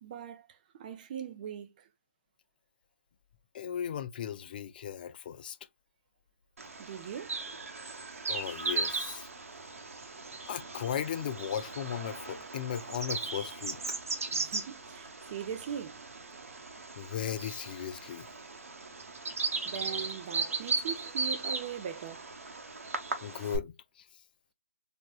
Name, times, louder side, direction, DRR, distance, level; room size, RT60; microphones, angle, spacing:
voice 1, 0.0-1.9 6.8-7.4 14.3-16.1 18.4-18.5 19.6-22.2, right 8 dB, 35° right, 0.6 m, -40 dB
voice 2, 3.5-5.6 8.3-9.3 10.5-14.0 17.0-18.3 23.2-23.7, left 9 dB, 35° left, 0.4 m, -36 dB
Bird vocalization bird call bird song, 6.6-23.6, right 4 dB, 70° right, 1.1 m, -37 dB
4.2 x 2.3 x 2.3 m
figure-of-eight pair, 145°, 8 cm